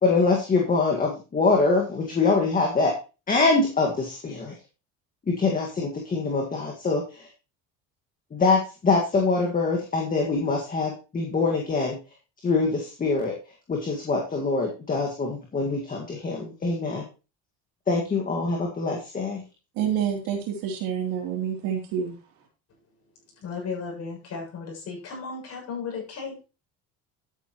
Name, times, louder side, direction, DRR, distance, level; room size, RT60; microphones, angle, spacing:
voice 1, 0.0-2.9 3.3-4.5 5.3-7.3 8.3-12.0 12.4-13.3 13.7-17.1 17.9-19.4, left 3 dB, 25° left, 2.0 m, -24 dB
voice 2, 19.8-22.2, right 8 dB, 80° right, 3.5 m, -28 dB
voice 3, 23.4-26.4, left 5 dB, 50° left, 7.0 m, -35 dB
12.0 x 9.1 x 3.1 m
cardioid pair, 130°, 33 cm